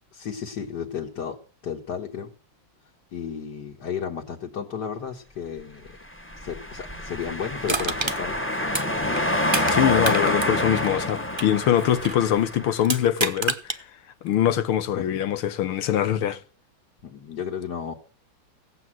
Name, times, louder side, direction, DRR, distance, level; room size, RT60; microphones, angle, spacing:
voice 1, 0.1-1.4 1.6-2.3 3.1-6.0 6.4-8.4 15.0-15.1 17.0-17.9, left 7 dB, 55° left, 2.0 m, -33 dB
sound 1, 6.2-12.9, left 1 dB, 10° left, 0.7 m, -27 dB
Crushing, 7.7-9.8 10.0-12.2 12.8-13.8 14.3-14.4, right 3 dB, 40° right, 0.3 m, -29 dB
voice 2, 9.7-13.9 14.2-16.4, left 10 dB, 90° left, 1.9 m, -23 dB
18.0 x 8.2 x 7.7 m
omnidirectional pair, 2.3 m